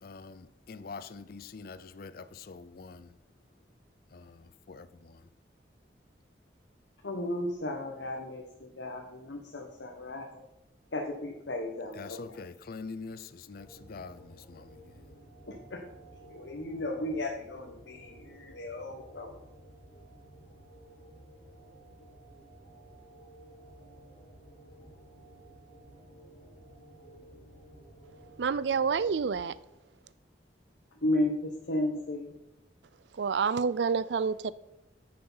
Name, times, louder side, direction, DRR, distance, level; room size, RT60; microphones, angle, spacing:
voice 1, 0.0-3.1 4.1-5.3 11.9-15.2, left 4 dB, 55° left, 0.5 m, -45 dB
voice 2, 7.0-10.4 10.9-12.2 15.5-15.8 16.3-19.3 31.0-32.3, left 1 dB, 80° left, 1.1 m, -34 dB
sound 1, 13.5-29.3, right 1 dB, 40° left, 3.8 m, -54 dB
voice 3, 28.4-29.5 33.2-34.5, right 5 dB, 75° right, 0.4 m, -28 dB
9.5 x 6.8 x 5.6 m
head